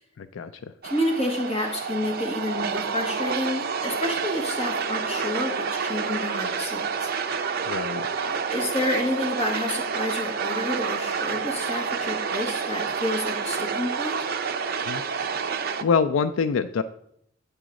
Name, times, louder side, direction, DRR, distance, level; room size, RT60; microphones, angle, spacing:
voice 1, 0.2-0.7 7.7-8.1 14.9-15.0 15.8-16.8, left 5 dB, 75° left, 12 dB, 0.3 m, -25 dB
voice 2, 0.8-7.1 8.2-14.2, left 1 dB, 30° left, 1 dB, 1.7 m, -29 dB
sound 1, 0.8-15.8, right 5 dB, 50° right, 0.5 m, -29 dB
9.1 x 3.9 x 6.2 m, 0.71 s
head